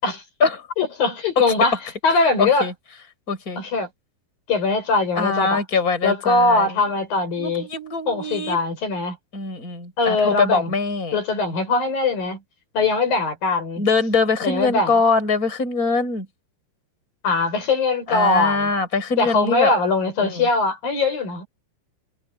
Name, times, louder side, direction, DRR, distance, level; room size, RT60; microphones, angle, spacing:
voice 1, 0.8-2.7 3.6-3.9 4.5-5.6 6.0-7.7 8.1-9.2 10.0-10.8 11.1-12.4 12.7-13.8 14.4-14.9 17.2-18.7 19.2-21.5, left 3 dB, 55° left, 8.5 m, -21 dB
voice 2, 2.4-2.7 3.3-3.6 5.2-6.7 7.4-8.6 9.3-11.1 13.8-16.3 18.1-19.7 20.2-20.5, left 4 dB, 20° left, 6.7 m, -22 dB
omnidirectional pair, 4.7 m